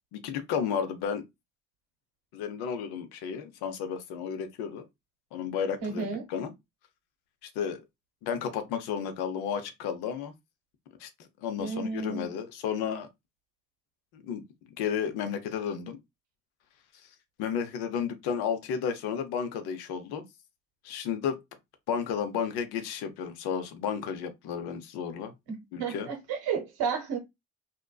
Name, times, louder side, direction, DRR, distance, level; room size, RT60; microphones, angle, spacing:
voice 1, 0.1-1.2 2.3-4.8 5.3-6.5 7.6-7.8 8.2-10.3 11.0-11.1 11.4-13.1 14.1-14.4 14.8-16.0 17.4-20.2 20.8-21.4 21.9-25.3 25.7-26.1, left 7 dB, 75° left, 0.6 m, -32 dB
voice 2, 5.8-6.2 11.6-12.3 25.5-27.2, right 6 dB, 70° right, 0.9 m, -32 dB
2.5 x 2.1 x 2.3 m
hypercardioid pair, 55°, 39 cm